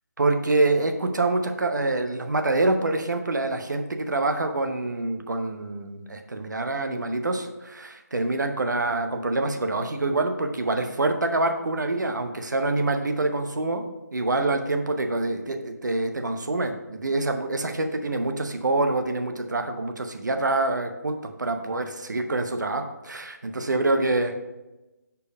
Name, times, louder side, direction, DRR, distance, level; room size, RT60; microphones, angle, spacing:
voice 1, 0.2-13.8 14.1-24.4, right 2 dB, 85° right, 6 dB, 0.8 m, -26 dB
5.3 x 4.6 x 4.9 m, 1.0 s
hypercardioid pair, 175°, 10 cm